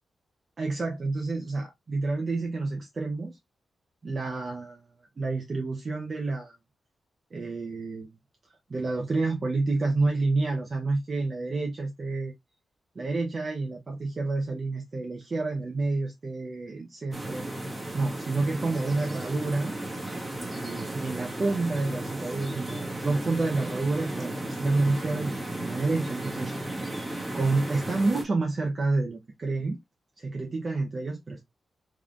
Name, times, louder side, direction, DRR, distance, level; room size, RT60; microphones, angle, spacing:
voice 1, 0.6-3.4 4.0-4.9 5.2-6.5 7.3-8.1 8.7-12.3 12.9-17.5 17.9-19.7 20.5-26.7 27.3-29.8 30.2-31.4, right 3 dB, 40° right, 0.8 m, -29 dB
sound 1, 17.1-28.2, right 1 dB, 15° right, 1.3 m, -34 dB
3.6 x 3.2 x 2.4 m
wide cardioid pair, 115°, 0 cm